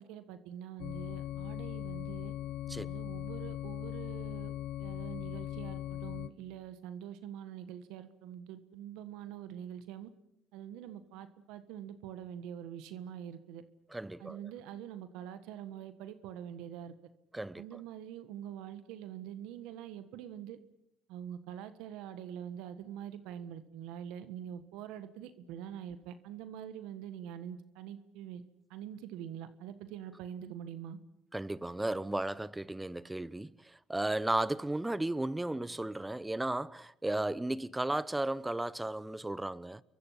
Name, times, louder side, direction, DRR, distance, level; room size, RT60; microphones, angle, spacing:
voice 1, 0.0-2.3 2.9-10.1 10.5-13.6 14.2-16.9 17.6-20.6 21.1-28.4 28.7-31.0, right 10 dB, 80° right, 1.5 m, -45 dB
sound 1, 0.8-6.3, left 13 dB, 75° left, 1.1 m, -39 dB
voice 2, 13.9-14.4 17.3-17.8 31.3-39.8, right 1 dB, 10° right, 0.9 m, -34 dB
29.5 x 23.0 x 5.8 m
supercardioid pair, 70°, 0 cm